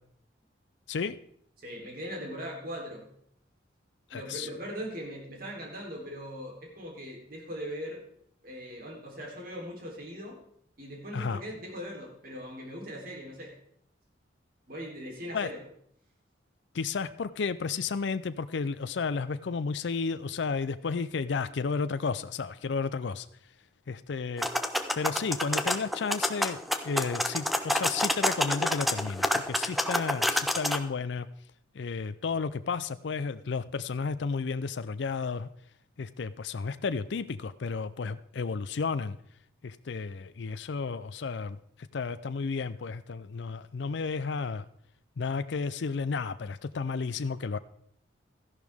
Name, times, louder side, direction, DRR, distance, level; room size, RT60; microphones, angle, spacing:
voice 1, 1.6-3.1 4.1-8.0 8.4-10.4 10.8-13.5 14.7-15.6, equal, 50° right, -1 dB, 3.4 m, -40 dB
voice 2, 4.1-4.5 11.1-11.4 15.3-15.5 16.7-23.3 23.9-24.5 24.9-31.3 31.7-35.5 36.0-39.2 39.6-41.6 41.9-44.7 45.2-47.6, left 5 dB, 65° left, 12 dB, 0.5 m, -32 dB
sound 1, 24.4-30.8, left 1 dB, ahead, 0.6 m, -28 dB
13.5 x 11.0 x 3.5 m, 0.66 s
head